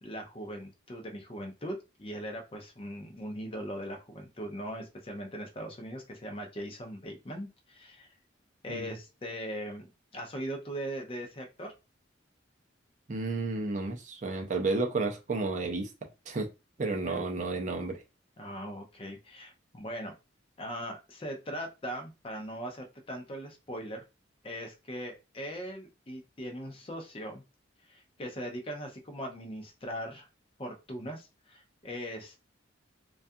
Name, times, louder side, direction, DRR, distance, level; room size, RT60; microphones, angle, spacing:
voice 1, 0.0-8.2 8.6-9.9 10.1-11.7 17.0-17.2 18.4-20.1 20.6-24.0 24.4-27.4 27.9-30.3 30.6-32.5, equal, 30° left, 3 dB, 0.5 m, -40 dB
voice 2, 13.1-15.9 16.3-16.5 16.8-18.0, right 3 dB, 40° right, 3 dB, 0.4 m, -31 dB
2.3 x 2.3 x 2.6 m, 0.27 s
head